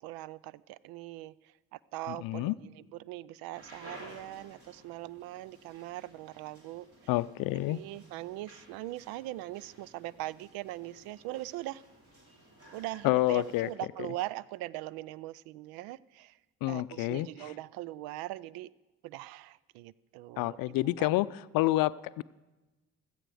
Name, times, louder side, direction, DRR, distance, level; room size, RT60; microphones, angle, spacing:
voice 1, 0.0-7.1 7.5-11.8 12.7-16.4 16.7-18.7 19.0-21.1, right 16 dB, 65° right, 22 dB, 0.5 m, -41 dB
voice 2, 2.1-2.5 7.1-7.8 13.0-13.7 16.6-17.3 20.4-21.3 21.5-22.2, left 18 dB, 60° left, 18 dB, 0.5 m, -28 dB
sound 1, 3.5-13.7, right 1 dB, 35° right, 3.8 m, -55 dB
16.5 x 13.0 x 4.9 m, 1.1 s
hypercardioid pair, 50°, 38 cm